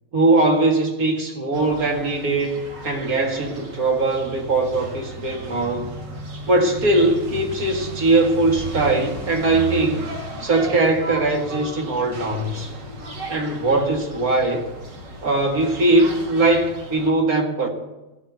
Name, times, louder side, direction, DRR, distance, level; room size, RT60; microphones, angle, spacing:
voice 1, 0.1-5.9 6.5-10.0 10.4-12.7 13.3-14.7 15.2-17.7, right 2 dB, 55° right, 2.4 m, -20 dB
sound 1, 1.5-17.1, right 2 dB, 75° right, 2.7 m, -35 dB
15.0 x 8.4 x 8.1 m
omnidirectional pair, 1.9 m